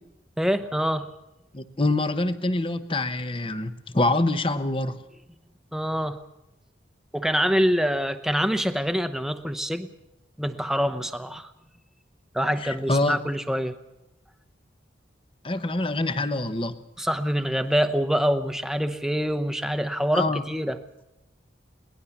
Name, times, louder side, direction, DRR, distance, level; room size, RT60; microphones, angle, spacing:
voice 1, 0.4-1.1 5.7-6.2 7.1-9.9 10.4-11.5 12.3-13.7 17.0-20.8, equal, ahead, 9 dB, 0.9 m, -25 dB
voice 2, 1.5-5.0 12.6-13.2 15.4-16.7 20.1-20.4, left 2 dB, 30° left, 11 dB, 1.0 m, -25 dB
22.0 x 19.0 x 7.2 m, 0.94 s
head